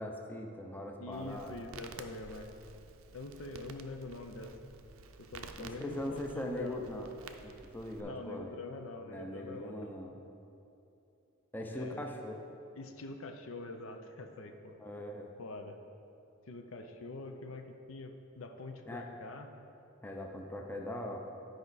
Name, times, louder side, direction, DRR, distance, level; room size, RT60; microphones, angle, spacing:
voice 1, 0.0-1.6 5.6-7.1 7.4-8.6 9.1-10.2 11.5-12.4 14.8-15.3 18.9-19.1 20.0-21.2, left 1 dB, 10° left, 1 dB, 0.6 m, -41 dB
voice 2, 1.0-2.5 3.1-4.5 5.2-6.8 8.0-9.9 11.6-12.1 12.8-14.8 15.4-15.8 16.5-19.5, left 2 dB, 75° left, 5 dB, 0.6 m, -45 dB
Crackle, 1.1-8.0, right 4 dB, 90° right, 0.5 m, -52 dB
10.5 x 5.0 x 4.0 m, 2.7 s
head